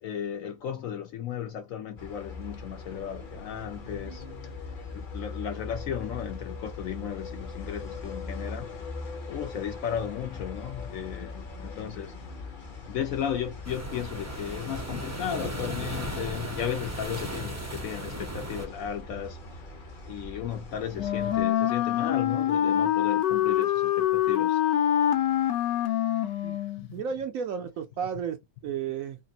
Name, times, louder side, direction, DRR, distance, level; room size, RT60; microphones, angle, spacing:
voice 1, 0.0-4.2 4.9-8.7 9.3-12.2 12.9-19.4 20.1-24.6 26.8-27.0, left 9 dB, 70° left, 0.8 m, -35 dB
sound 1, 2.0-21.4, left 3 dB, 40° left, 0.8 m, -41 dB
sound 2, 13.6-18.7, right 1 dB, 20° right, 0.4 m, -36 dB
Wind instrument woodwind instrument, 20.9-26.9, left 11 dB, 90° left, 1.4 m, -25 dB
voice 2, 26.4-28.4 28.6-29.2, right 7 dB, 70° right, 0.8 m, -33 dB
3.3 x 2.4 x 3.9 m
omnidirectional pair, 1.8 m